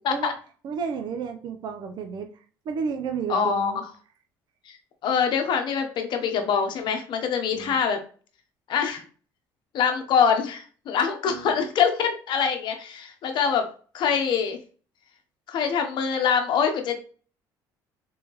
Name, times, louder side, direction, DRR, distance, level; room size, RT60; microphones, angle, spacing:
voice 1, 0.6-2.3 2.7-3.8 7.5-7.7 11.3-11.7, right 6 dB, 55° right, 5 dB, 0.7 m, -32 dB
voice 2, 3.3-3.8 4.7-4.8 5.0-8.0 8.7-9.0 9.7-13.7 13.9-14.6 15.5-17.0, left 7 dB, 60° left, 5 dB, 0.9 m, -24 dB
3.5 x 3.4 x 3.0 m, 0.40 s
cardioid pair, 100°, 9 cm